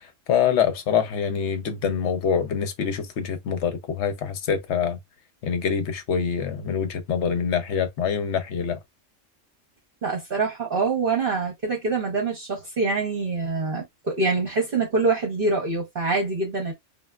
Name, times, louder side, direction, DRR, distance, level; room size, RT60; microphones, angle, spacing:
voice 1, 0.3-5.0 5.4-8.8, left 7 dB, 65° left, 0.9 m, -25 dB
voice 2, 10.0-16.7, right 3 dB, 50° right, 1.0 m, -25 dB
3.3 x 2.3 x 2.3 m
omnidirectional pair, 1.3 m